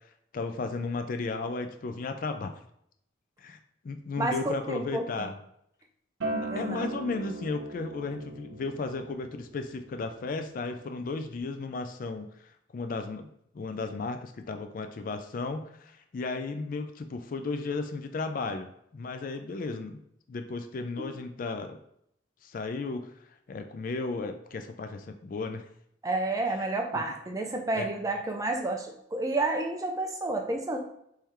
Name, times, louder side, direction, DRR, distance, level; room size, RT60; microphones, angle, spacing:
voice 1, 0.3-2.5 3.4-3.6 3.8-5.4 6.3-13.3 13.5-20.0 20.3-21.8 22.4-23.1 23.5-25.7 26.9-27.0 27.7-27.9, left 3 dB, 45° left, 7 dB, 0.3 m, -34 dB
voice 2, 4.2-5.3 6.5-6.9 21.0-21.1 26.0-30.8, right 2 dB, 15° right, 2 dB, 0.5 m, -30 dB
Acoustic guitar, 6.2-11.4, right 2 dB, 70° right, 1.0 m, -39 dB
3.7 x 3.3 x 4.3 m, 0.73 s
head